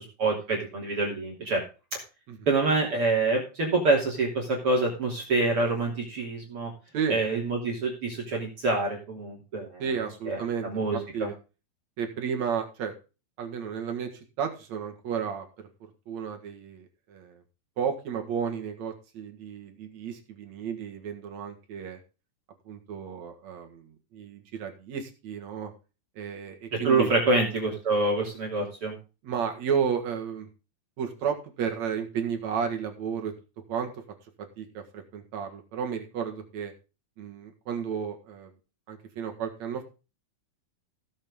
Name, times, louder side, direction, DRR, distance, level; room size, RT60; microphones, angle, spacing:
voice 1, 0.0-1.6 2.5-6.7 7.1-9.8 10.3-10.4 10.6-11.3 26.8-28.9, right 3 dB, 40° right, -1 dB, 3.5 m, -26 dB
voice 2, 9.8-10.7 10.9-11.4 12.0-12.9 13.4-15.7 16.1-17.4 17.8-22.0 22.7-25.7 26.2-27.1 29.2-30.5 31.0-33.3 33.7-34.0 34.4-36.7 37.2-38.5 38.9-39.8, right 7 dB, 55° right, 4 dB, 2.7 m, -32 dB
16.5 x 7.5 x 3.6 m, 0.31 s
omnidirectional pair, 4.2 m